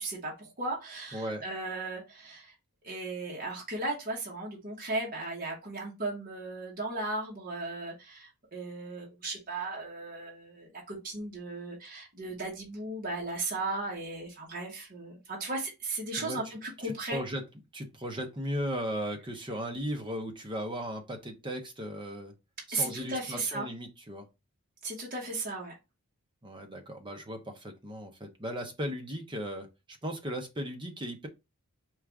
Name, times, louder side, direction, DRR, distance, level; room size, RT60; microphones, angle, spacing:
voice 1, 0.0-2.5 2.8-17.2 22.7-23.7 24.8-25.8, right 2 dB, 40° right, 1.3 m, -36 dB
voice 2, 1.1-1.4 16.2-16.5 16.8-17.4 17.7-22.3 22.7-24.3 26.4-29.7 30.0-31.3, equal, 20° right, 0.6 m, -36 dB
4.6 x 2.4 x 3.4 m
head